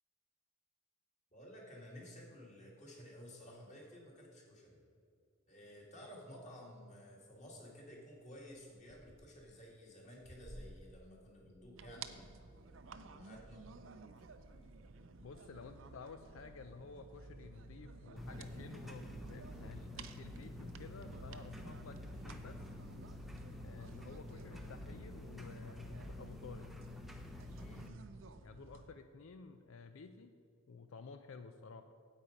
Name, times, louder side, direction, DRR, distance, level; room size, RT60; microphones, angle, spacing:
voice 1, 1.3-4.8 5.5-12.3 13.0-13.6 27.6-27.9, equal, 35° left, -2 dB, 2.1 m, -54 dB
sound 1, 6.9-13.8 14.1-14.8 15.7-16.1 16.6-16.7 16.9-20.1, equal, 55° left, 2.6 m, -61 dB
sound 2, 11.8-28.9, right 4 dB, 70° right, 0.5 m, -54 dB
voice 2, 15.2-22.7 23.6-26.7 28.4-30.3 30.7-31.9, left 4 dB, 75° left, 8 dB, 0.4 m, -52 dB
sound 3, 18.2-27.9, left 1 dB, ahead, 0.6 m, -49 dB
9.0 x 8.5 x 5.2 m, 2.4 s
head